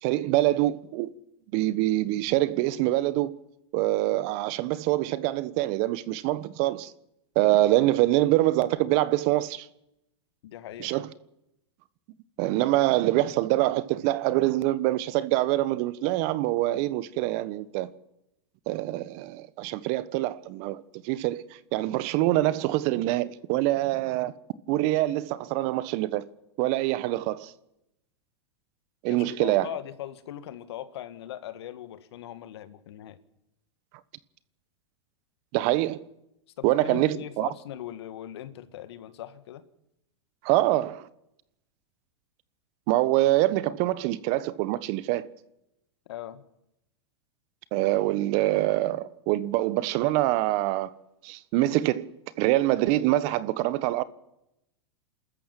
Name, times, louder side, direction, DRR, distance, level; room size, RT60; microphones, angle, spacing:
voice 1, 0.0-1.1 1.5-3.4 3.7-6.9 7.3-9.7 10.8-11.1 12.4-17.9 18.7-24.4 24.7-26.3 26.6-27.5 29.0-29.7 35.5-36.0 36.6-37.5 40.4-41.1 42.9-45.3 47.7-50.9 51.2-52.1 52.4-54.0, right 16 dB, 50° right, 1.2 m, -25 dB
voice 2, 10.4-10.9 29.1-33.2 36.6-39.6 46.1-46.4, left 12 dB, 70° left, 1.8 m, -40 dB
28.5 x 13.5 x 7.6 m
hypercardioid pair, 105°, 14 cm